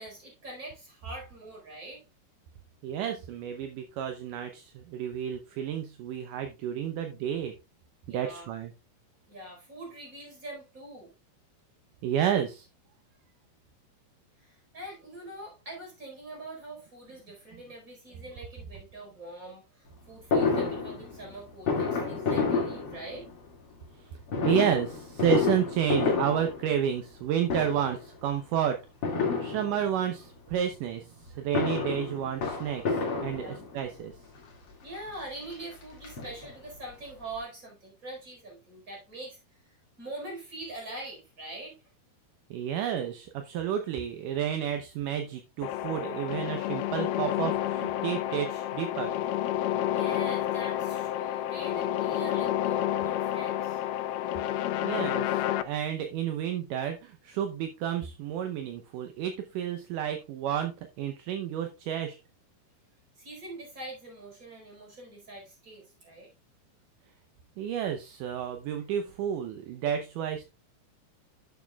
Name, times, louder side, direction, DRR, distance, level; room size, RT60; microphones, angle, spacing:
voice 1, 0.0-2.0 8.1-8.5 9.3-11.1 14.4-23.3 33.3-33.7 34.8-39.4 39.6-41.8 49.9-53.8 63.2-66.3, right 2 dB, 20° right, 4.5 m, -43 dB
voice 2, 2.8-7.6 8.1-8.7 12.0-12.7 24.4-28.8 29.1-34.1 42.5-49.1 54.8-62.2 67.6-70.4, right 9 dB, 75° right, 2.0 m, -31 dB
Fireworks, 20.3-23.5 24.3-27.2 27.5-28.1 29.0-30.1 31.3-33.9 34.7-34.8 35.1-35.2 35.5-36.8 37.1-37.2 37.3-37.4, left 4 dB, 40° left, 2.6 m, -30 dB
sound 1, 45.6-55.6, left 12 dB, 80° left, 2.4 m, -30 dB
11.5 x 7.2 x 2.3 m
omnidirectional pair, 4.6 m